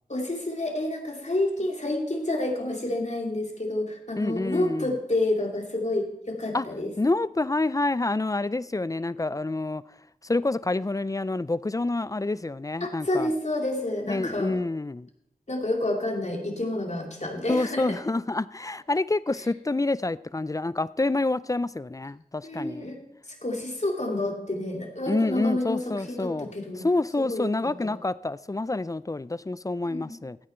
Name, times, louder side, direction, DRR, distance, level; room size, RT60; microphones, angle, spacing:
voice 1, 0.1-6.9 12.8-14.6 15.5-18.0 22.4-23.0 23.3-26.8 27.3-27.5 27.8-27.9 29.8-30.1, left 1 dB, 50° left, 2.4 m, -29 dB
voice 2, 4.2-4.9 6.5-6.7 7.0-9.8 10.2-13.3 14.1-15.1 17.5-22.9 25.1-26.5 26.8-30.4, left 2 dB, 25° left, 0.3 m, -27 dB
15.0 x 8.9 x 4.4 m
wide cardioid pair, 60°, 15 cm